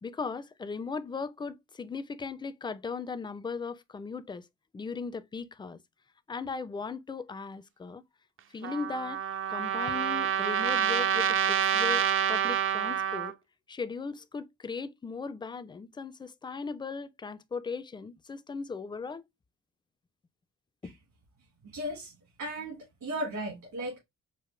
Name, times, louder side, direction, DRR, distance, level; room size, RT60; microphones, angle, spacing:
voice 1, 0.0-4.5 4.7-5.8 6.3-8.0 8.5-9.2 9.5-13.3 13.7-19.2 20.8-21.0, left 5 dB, 15° left, 0.4 m, -38 dB
Trumpet, 8.6-13.3, right 9 dB, 45° right, 0.4 m, -27 dB
voice 2, 21.7-22.1 22.4-24.0, right 1 dB, 70° right, 1.8 m, -35 dB
4.9 x 2.1 x 3.2 m
cardioid pair, 90°, 30 cm